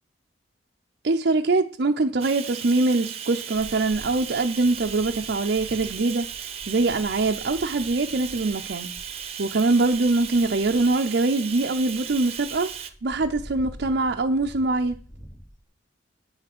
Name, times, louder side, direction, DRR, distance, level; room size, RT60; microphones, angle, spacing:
voice 1, 1.0-8.9 9.4-12.7 13.0-15.0, right 3 dB, 60° right, 0.6 m, -23 dB
Bathtub (filling or washing), 2.2-12.9, right 8 dB, 35° right, 0.8 m, -36 dB
sound 1, 3.5-15.6, equal, 20° left, 1.4 m, -47 dB
8.6 x 6.0 x 6.0 m
head